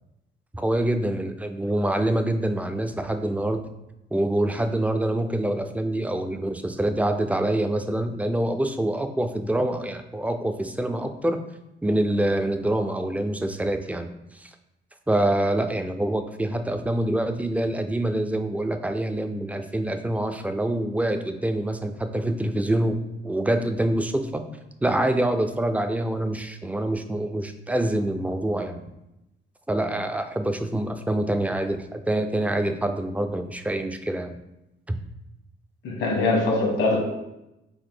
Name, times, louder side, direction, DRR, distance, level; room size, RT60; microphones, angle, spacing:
voice 1, 0.5-3.6 4.1-11.4 11.8-14.5 15.1-24.4 24.8-28.8 29.7-34.4 34.9-35.0, right 1 dB, 5° right, 7 dB, 0.3 m, -26 dB
voice 2, 35.8-37.0, left 2 dB, 80° left, -1 dB, 1.3 m, -22 dB
3.8 x 2.5 x 3.8 m, 0.91 s
cardioid pair, 90°, 20 cm